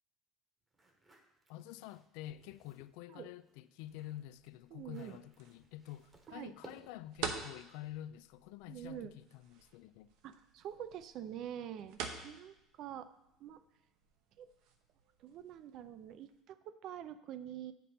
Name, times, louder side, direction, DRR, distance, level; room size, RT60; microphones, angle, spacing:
sound 1, 0.7-3.0 3.4-7.2, right 2 dB, 20° right, 1.0 m, -61 dB
voice 1, 1.5-10.1, left 14 dB, 80° left, 0.3 m, -48 dB
sound 2, 3.8-16.4, right 6 dB, 75° right, 0.9 m, -49 dB
voice 2, 4.7-5.2 6.3-6.5 8.7-9.1 10.2-13.1 13.4-13.6 14.4-14.5 15.2-17.7, right 10 dB, 50° right, 0.4 m, -46 dB
8.6 x 5.3 x 4.3 m
cardioid pair, 150°, 0 cm